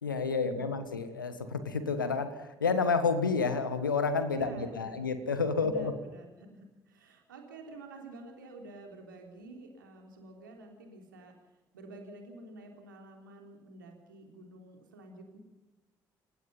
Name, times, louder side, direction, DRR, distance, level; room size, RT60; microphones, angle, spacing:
voice 1, 0.0-5.9, left 4 dB, 80° left, 11 dB, 1.7 m, -30 dB
voice 2, 4.3-5.1 5.6-11.4 11.7-15.4, right 2 dB, 80° right, 2 dB, 3.6 m, -49 dB
29.0 x 16.0 x 5.6 m, 1.1 s
figure-of-eight pair, 45°, 11 cm